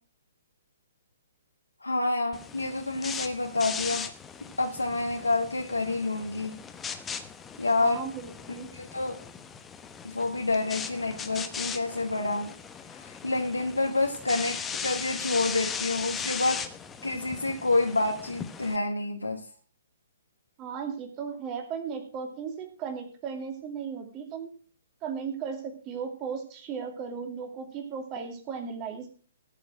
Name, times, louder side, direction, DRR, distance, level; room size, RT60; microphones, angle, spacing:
voice 1, 1.8-4.1 4.6-6.6 7.6-8.0 8.7-9.2 10.0-12.5 13.2-16.6 17.0-19.4, left 2 dB, 80° left, 2 dB, 1.7 m, -28 dB
air freshener spray, 2.3-18.8, left 6 dB, 15° left, 1.0 m, -38 dB
voice 2, 7.8-8.7 20.6-24.5 25.0-29.1, right 6 dB, 25° right, 4 dB, 2.5 m, -36 dB
15.0 x 7.1 x 6.1 m, 0.41 s
figure-of-eight pair, 125°, 0 cm